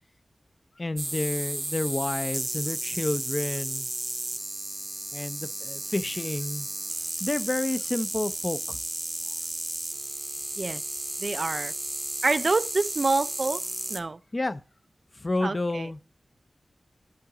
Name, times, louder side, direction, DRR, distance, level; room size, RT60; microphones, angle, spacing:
voice 1, 0.8-3.9 5.1-6.7 7.2-8.8 14.3-14.6 15.2-16.0, left 2 dB, 35° left, 0.5 m, -30 dB
sound 1, 1.0-14.0, right 1 dB, 25° right, 0.7 m, -33 dB
voice 2, 11.2-11.7 12.2-13.6 13.9-14.2 15.4-15.9, right 3 dB, 50° right, 0.3 m, -27 dB
11.5 x 3.8 x 4.7 m
wide cardioid pair, 75°, 0 cm